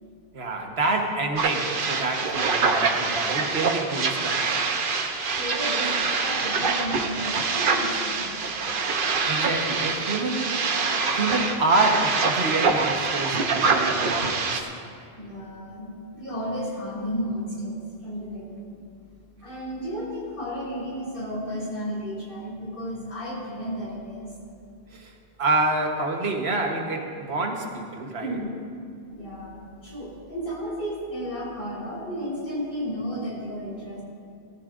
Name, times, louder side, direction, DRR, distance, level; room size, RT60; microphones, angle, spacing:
voice 1, 0.3-4.6 9.3-10.6 11.1-14.7 24.9-25.1 25.4-28.4, right 2 dB, 80° right, 2 dB, 1.4 m, -27 dB
sound 1, 1.4-14.6, right 4 dB, 60° right, 1.0 m, -25 dB
voice 2, 5.2-8.6 15.2-18.8 19.4-24.3 28.2-28.5 29.1-34.0, equal, 60° left, -6 dB, 4.1 m, -33 dB
19.0 x 14.0 x 2.5 m, 2.4 s
omnidirectional pair, 1.0 m